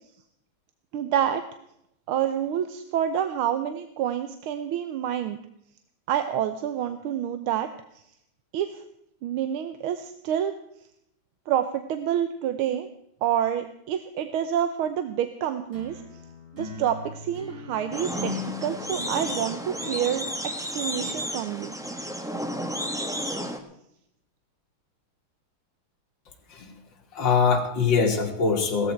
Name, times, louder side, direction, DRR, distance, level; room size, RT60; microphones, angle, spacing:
voice 1, 0.9-1.5 2.1-5.4 6.1-8.0 8.5-8.8 9.2-10.6 11.5-12.9 13.2-16.0 16.5-21.8, right 10 dB, 80° right, 10 dB, 1.6 m, -28 dB
sound 1, 15.7-21.3, left 3 dB, 35° right, 6.8 m, -40 dB
sound 2, 17.9-23.6, equal, 5° right, 0.5 m, -32 dB
voice 2, 27.1-28.9, left 5 dB, 60° left, 4 dB, 2.5 m, -23 dB
17.5 x 14.0 x 4.6 m, 0.76 s
omnidirectional pair, 2.3 m